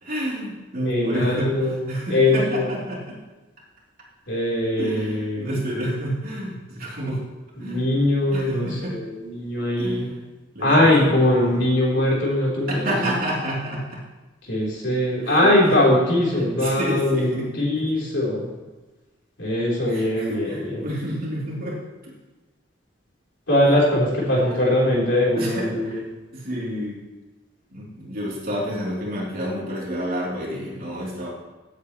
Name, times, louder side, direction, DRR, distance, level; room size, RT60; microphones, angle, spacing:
voice 1, 0.0-3.2 4.8-7.2 7.6-7.8 8.3-9.0 9.8-10.2 10.5-11.6 12.7-14.0 15.2-15.8 16.6-18.1 19.9-22.1 24.3-24.6 25.4-26.0 26.3-27.0 27.7-31.3, equal, 50° right, -5 dB, 3.5 m, -29 dB
voice 2, 0.8-2.7 4.3-5.5 7.6-10.1 10.6-13.0 14.4-18.5 19.4-20.9 23.5-26.0, left 1 dB, 70° left, -4 dB, 3.8 m, -21 dB
16.0 x 8.3 x 3.2 m, 1.2 s
head